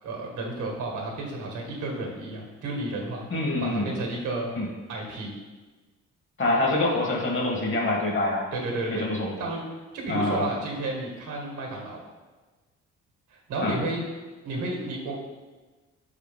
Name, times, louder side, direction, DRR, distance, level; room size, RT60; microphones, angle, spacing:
voice 1, 0.0-3.2 3.6-4.5 4.9-5.3 8.5-9.1 9.4-9.6 9.9-12.0 13.3-14.0 14.4-15.2, right 2 dB, 75° right, 0 dB, 1.8 m, -32 dB
voice 2, 3.3-3.9 4.6-4.7 6.4-8.5 8.9-9.3 10.1-10.5 13.6-13.8, left 2 dB, 40° left, -1 dB, 1.6 m, -25 dB
5.8 x 4.9 x 3.6 m, 1.3 s
cardioid pair, 90°, 30 cm